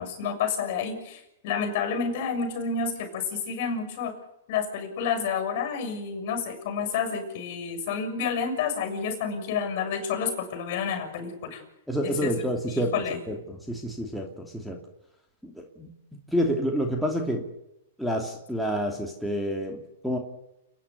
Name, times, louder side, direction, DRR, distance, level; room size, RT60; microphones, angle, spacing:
voice 1, 0.0-4.2 4.5-11.6 12.0-13.2, left 6 dB, 55° left, 6 dB, 6.6 m, -30 dB
voice 2, 11.9-12.9 13.3-14.8 15.4-15.9 16.3-17.4 18.0-20.2, equal, ahead, 2 dB, 2.8 m, -28 dB
29.5 x 10.0 x 9.6 m, 0.85 s
hypercardioid pair, 120°, 0 cm